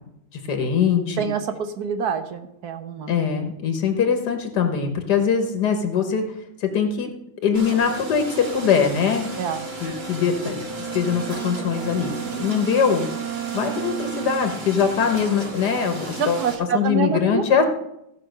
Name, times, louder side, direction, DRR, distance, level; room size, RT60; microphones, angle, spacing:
voice 1, 0.5-1.3 3.1-6.3 6.6-7.1 7.4-9.3 9.8-10.6 10.9-13.1 13.5-17.6, left 6 dB, 85° left, 6 dB, 1.8 m, -22 dB
voice 2, 1.2-3.1 9.4-9.6 16.2-17.4, right 6 dB, 70° right, 9 dB, 1.5 m, -26 dB
sound 1, 7.5-16.5, right 2 dB, 40° right, 1.8 m, -34 dB
Bowed string instrument, 10.6-14.7, right 12 dB, 90° right, 1.3 m, -33 dB
15.5 x 5.4 x 6.5 m, 0.81 s
omnidirectional pair, 1.7 m